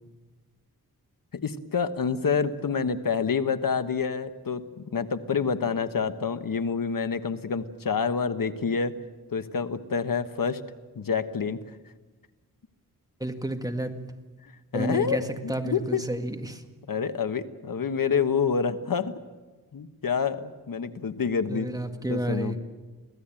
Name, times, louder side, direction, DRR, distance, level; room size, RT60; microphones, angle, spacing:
voice 1, 1.3-8.9 9.3-10.6 10.9-11.6 14.4-16.1 16.9-19.1 19.7-21.7 22.1-22.6, left 6 dB, 65° left, 10 dB, 1.3 m, -28 dB
voice 2, 13.2-13.9 14.7-15.2 15.5-16.6 21.5-22.6, right 1 dB, 10° right, 6 dB, 1.9 m, -30 dB
24.5 x 16.0 x 9.0 m, 1.3 s
wide cardioid pair, 75°, 36 cm